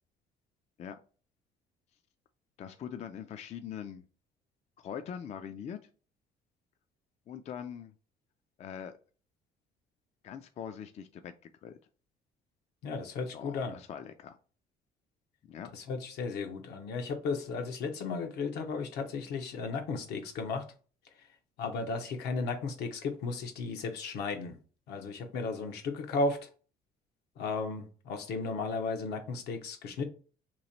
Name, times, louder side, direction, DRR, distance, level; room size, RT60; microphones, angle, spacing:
voice 1, 2.6-4.0 4.8-5.8 7.3-7.9 8.6-8.9 10.2-11.8 13.3-14.4 15.4-15.7, left 8 dB, 40° left, 8 dB, 0.3 m, -42 dB
voice 2, 12.8-13.8 15.7-20.6 21.6-24.6 24.9-26.5 27.4-30.1, left 4 dB, 80° left, 5 dB, 0.9 m, -34 dB
3.0 x 2.8 x 4.0 m, 0.39 s
cardioid pair, 110°, 17 cm